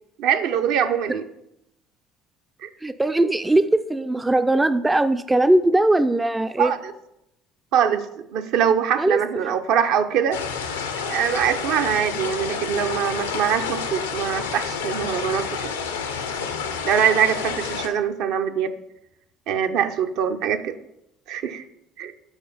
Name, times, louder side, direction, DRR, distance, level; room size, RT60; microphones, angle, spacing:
voice 1, 0.2-1.2 2.6-2.7 6.6-6.8 7.7-8.1 8.3-10.4 11.0-15.7 16.8-18.7 19.5-20.7 21.3-21.6 22.0-22.1, right 8 dB, 60° right, 7 dB, 0.5 m, -23 dB
voice 2, 2.8-6.7 9.0-9.5, right 1 dB, 15° right, 11 dB, 0.3 m, -20 dB
sound 1, 10.3-17.9, left 6 dB, 80° left, 0.6 m, -29 dB
7.2 x 4.3 x 5.1 m, 0.83 s
figure-of-eight pair, 55°, 0 cm